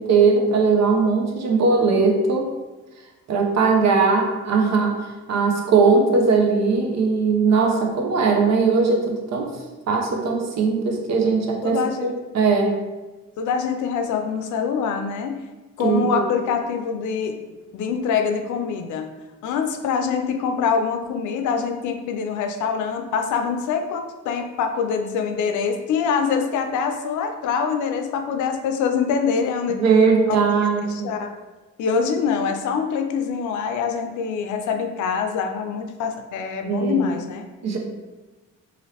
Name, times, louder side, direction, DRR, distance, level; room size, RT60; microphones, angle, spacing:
voice 1, 0.0-2.5 3.3-9.5 9.9-12.8 15.8-16.3 29.7-31.1 36.6-37.2 37.6-37.8, right 4 dB, 60° right, 2 dB, 0.7 m, -19 dB
voice 2, 11.6-12.1 13.4-15.4 15.8-17.4 17.7-19.1 19.4-29.8 30.9-31.3 31.8-37.5, left 6 dB, 75° left, 5 dB, 0.5 m, -24 dB
3.1 x 2.6 x 2.8 m, 1.2 s
cardioid pair, 90°, 30 cm